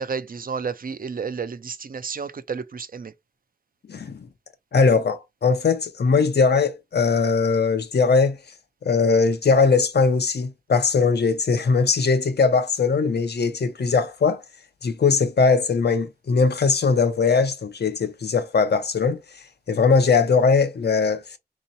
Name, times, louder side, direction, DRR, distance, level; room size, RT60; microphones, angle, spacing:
voice 1, 0.0-3.1, right 5 dB, 60° right, 0.5 m, -31 dB
voice 2, 3.9-4.3 4.7-8.4 8.8-14.4 14.8-19.2 19.7-21.2, left 4 dB, 80° left, 0.6 m, -20 dB
3.8 x 2.8 x 2.7 m
wide cardioid pair, 90°, 17 cm